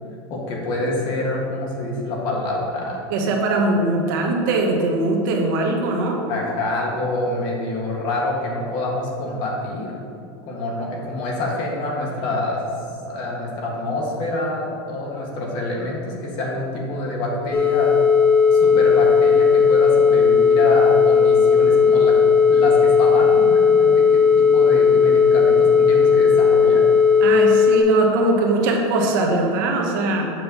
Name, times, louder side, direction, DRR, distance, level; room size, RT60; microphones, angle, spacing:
voice 1, 0.3-3.0 6.3-9.9 10.4-12.6 13.1-18.0 18.5-22.1 22.5-26.8, left 2 dB, 35° left, -2 dB, 1.5 m, -26 dB
voice 2, 3.1-6.2 27.2-30.3, right 2 dB, 55° right, 1 dB, 1.2 m, -21 dB
sound 1, 17.5-27.8, left 6 dB, 15° left, 0.6 m, -15 dB
7.7 x 4.3 x 6.8 m, 2.5 s
supercardioid pair, 175°, 13 cm